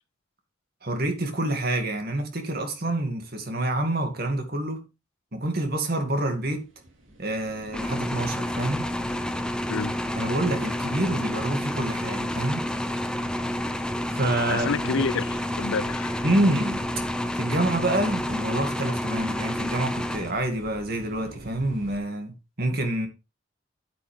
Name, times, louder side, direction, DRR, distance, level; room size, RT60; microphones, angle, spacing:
voice 1, 0.8-4.8 5.3-6.7 7.2-8.9 10.2-12.6 14.1-14.9 16.2-16.8 17.4-22.3 22.6-23.1, right 1 dB, 50° right, 2.3 m, -27 dB
sound 1, 6.3-22.0, right 1 dB, 80° right, 3.1 m, -48 dB
sound 2, 7.7-20.7, left 1 dB, 5° left, 0.7 m, -29 dB
voice 2, 14.5-16.2, left 5 dB, 80° left, 0.4 m, -29 dB
9.9 x 8.4 x 3.5 m
head